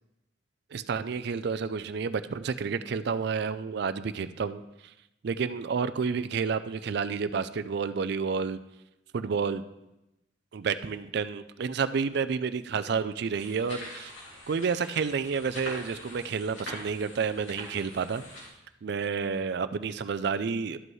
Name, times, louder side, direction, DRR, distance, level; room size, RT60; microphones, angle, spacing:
voice 1, 0.7-4.6 5.2-8.6 9.1-9.6 10.5-14.1 14.5-18.2 18.8-20.8, right 5 dB, 60° right, 13 dB, 0.4 m, -30 dB
sound 1, 13.4-18.5, left 1 dB, 75° left, 2.7 m, -44 dB
12.5 x 7.6 x 3.2 m, 0.91 s
head